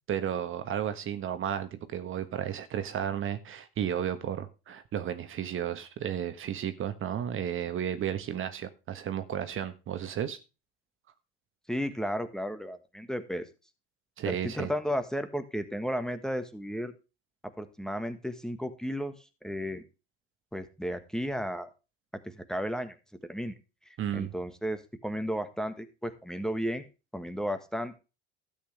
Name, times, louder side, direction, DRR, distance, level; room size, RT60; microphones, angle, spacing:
voice 1, 0.1-10.4 14.2-14.7 24.0-24.3, right 9 dB, 45° right, 1.4 m, -33 dB
voice 2, 11.7-13.5 14.3-16.9 17.6-19.2 19.4-19.8 20.5-21.7 22.2-22.9 23.3-23.5 23.9-26.8 27.1-28.0, equal, ahead, 1.5 m, -33 dB
12.5 x 8.5 x 3.4 m
hypercardioid pair, 80°, 30 cm